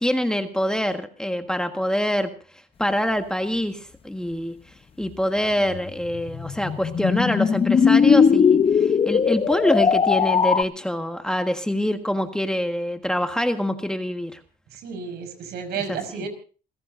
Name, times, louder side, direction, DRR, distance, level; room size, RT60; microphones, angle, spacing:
voice 1, 0.0-2.3 2.8-4.5 5.0-14.4 15.9-16.3, equal, 5° left, 6 dB, 1.5 m, -25 dB
sound 1, 5.7-10.6, left 6 dB, 35° left, 0.8 m, -19 dB
voice 2, 14.7-16.3, right 6 dB, 75° right, 8 dB, 5.3 m, -32 dB
28.0 x 16.0 x 2.6 m, 0.38 s
cardioid pair, 110°, 17 cm